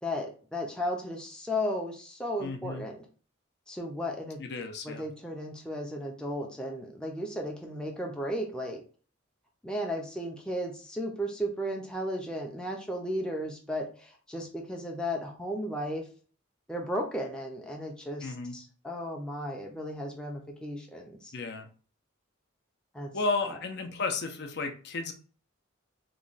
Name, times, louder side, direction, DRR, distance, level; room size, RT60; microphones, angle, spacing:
voice 1, 0.0-3.0 3.7-4.4 4.8-8.8 9.6-16.1 16.7-21.3 22.9-23.1 23.5-23.6, equal, 5° left, 0 dB, 0.5 m, -35 dB
voice 2, 2.4-2.8 4.4-5.0 18.2-18.5 21.3-21.7 23.1-25.1, left 3 dB, 55° left, 5 dB, 0.5 m, -33 dB
3.0 x 2.2 x 3.9 m, 0.39 s
head